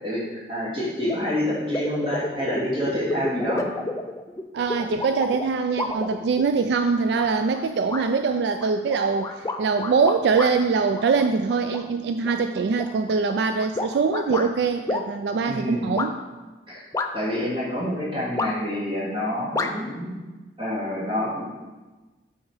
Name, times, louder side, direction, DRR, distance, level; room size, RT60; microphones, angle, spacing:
voice 1, 0.0-3.7 15.4-15.9 16.7-16.8 17.1-20.1 20.6-21.5, left 1 dB, 30° right, -8 dB, 2.6 m, -27 dB
sound 1, 1.1-1.2 1.5-6.6 7.2-7.6 7.9-8.1 8.6-10.5 10.9-11.8 12.2-14.5 14.9-15.1 16.0-16.1 16.9-17.4 18.4-18.8 19.5-19.7, left 2 dB, 20° left, 0.3 m, -30 dB
voice 2, 4.5-16.1, right 5 dB, 70° right, 7 dB, 0.3 m, -23 dB
8.1 x 4.2 x 4.9 m, 1.2 s
head